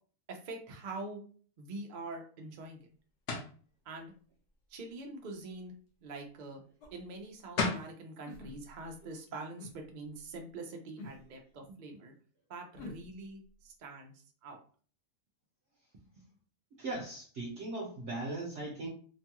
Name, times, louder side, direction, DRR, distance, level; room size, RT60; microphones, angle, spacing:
voice 1, 0.3-1.2 1.6-2.9 3.9-4.1 4.7-5.7 6.0-6.6 6.9-12.1 12.5-14.1 14.4-14.6 16.2-16.3, right 2 dB, 85° right, 2 dB, 0.4 m, -44 dB
sound 1, 3.3-3.6 7.2-7.3 7.6-7.9, left 4 dB, 60° left, 0.8 m, -32 dB
sound 2, 6.8-7.0 8.2-8.9 9.6-9.8 11.0-11.2 12.8-13.1, left 2 dB, 85° left, 1.3 m, -46 dB
voice 2, 16.8-18.9, right 2 dB, 55° right, -3 dB, 0.9 m, -38 dB
3.0 x 2.2 x 2.9 m, 0.43 s
omnidirectional pair, 1.7 m